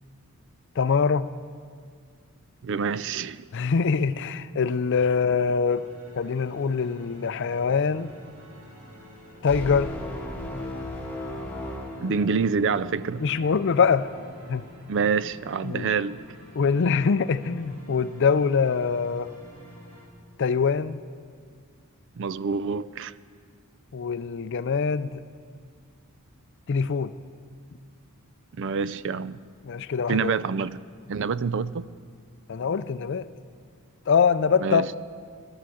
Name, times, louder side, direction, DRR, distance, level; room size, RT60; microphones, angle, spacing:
voice 1, 0.8-1.3 3.5-5.9 6.2-8.1 9.4-9.9 13.2-14.1 14.5-14.6 15.6-15.9 16.6-19.3 20.4-21.0 23.9-25.2 26.7-27.1 29.6-30.3 32.5-33.3 34.1-34.8, left 5 dB, 55° left, 0.4 m, -23 dB
voice 2, 2.6-3.5 12.0-13.2 14.9-16.2 22.2-23.1 28.5-29.4 30.1-30.8 31.1-31.9 34.6-34.9, right 5 dB, 55° right, 0.4 m, -27 dB
sound 1, 5.6-20.1, equal, 70° right, 2.8 m, -47 dB
sound 2, 9.5-12.9, left 1 dB, 5° left, 1.5 m, -36 dB
16.5 x 11.5 x 7.7 m
head